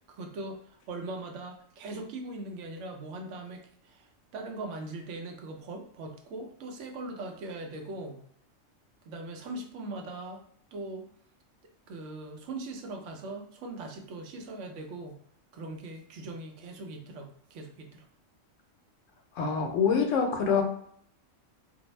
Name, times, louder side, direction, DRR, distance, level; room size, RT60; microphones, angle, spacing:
voice 1, 0.1-4.1 4.3-8.2 9.0-10.4 10.7-11.1 11.9-15.2 15.5-18.1, right 2 dB, 70° right, 3 dB, 0.9 m, -40 dB
voice 2, 19.4-20.6, left 6 dB, 80° left, 4 dB, 0.9 m, -25 dB
2.5 x 2.0 x 3.0 m, 0.66 s
omnidirectional pair, 1.3 m